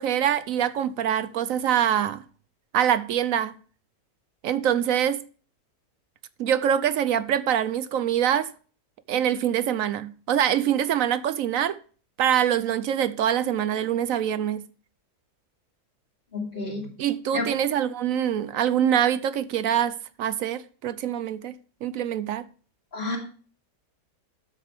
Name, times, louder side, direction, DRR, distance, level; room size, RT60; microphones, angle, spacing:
voice 1, 0.0-2.2 2.7-3.6 4.4-5.2 6.4-8.5 9.1-11.8 12.2-14.6 17.0-21.5 21.8-22.4, right 10 dB, 65° right, 0.9 m, -24 dB
voice 2, 16.3-16.9 17.3-17.5 22.9-23.2, left 2 dB, 35° left, 3.0 m, -30 dB
12.5 x 8.1 x 3.5 m
omnidirectional pair, 1.7 m